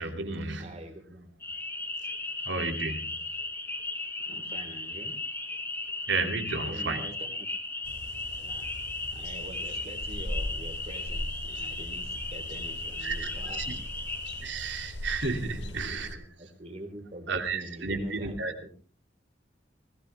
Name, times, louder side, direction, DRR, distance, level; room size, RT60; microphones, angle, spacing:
voice 1, 0.0-0.7 2.5-3.2 6.1-7.0 13.0-13.8 14.4-16.1 17.3-18.7, right 3 dB, 80° right, 5 dB, 2.8 m, -32 dB
voice 2, 0.6-1.4 4.3-5.2 6.6-7.5 8.4-8.7 9.1-13.8 15.3-18.7, right 1 dB, 35° right, 5 dB, 3.8 m, -45 dB
sound 1, 1.4-14.4, left 2 dB, 10° left, 2.2 m, -36 dB
sound 2, 7.8-16.1, left 1 dB, 70° left, 1.7 m, -39 dB
21.5 x 16.5 x 3.5 m, 0.37 s
head